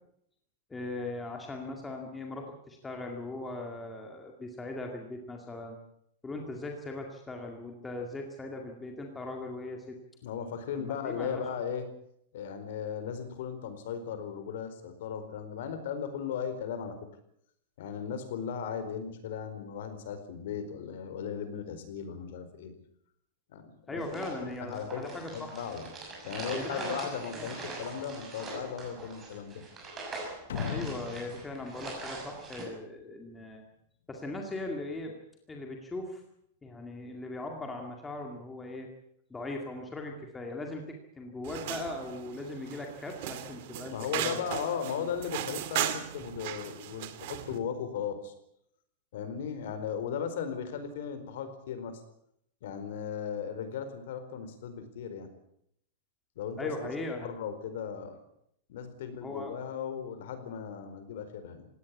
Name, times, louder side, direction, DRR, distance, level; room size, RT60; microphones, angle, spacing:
voice 1, 0.7-5.8 6.2-10.0 10.8-11.4 23.9-25.5 26.5-27.0 27.3-27.5 30.7-33.6 34.1-35.2 35.5-36.2 36.6-38.9 39.3-44.5 56.6-57.3 59.2-59.5, left 2 dB, 10° left, 2 dB, 2.2 m, -39 dB
voice 2, 10.2-11.9 12.3-17.0 17.8-22.7 23.5-25.9 26.2-29.6 43.9-48.3 49.1-52.0 52.6-55.3 56.4-56.9 57.2-58.2 58.7-61.7, left 7 dB, 60° left, 10 dB, 4.5 m, -37 dB
sound 1, 24.0-32.6, right 3 dB, 15° right, 6.5 m, -42 dB
sound 2, 30.5-33.0, left 9 dB, 80° left, 1.1 m, -39 dB
sound 3, 41.4-47.6, right 12 dB, 50° right, 2.2 m, -37 dB
20.0 x 17.5 x 8.5 m, 0.72 s
supercardioid pair, 175°, 0 cm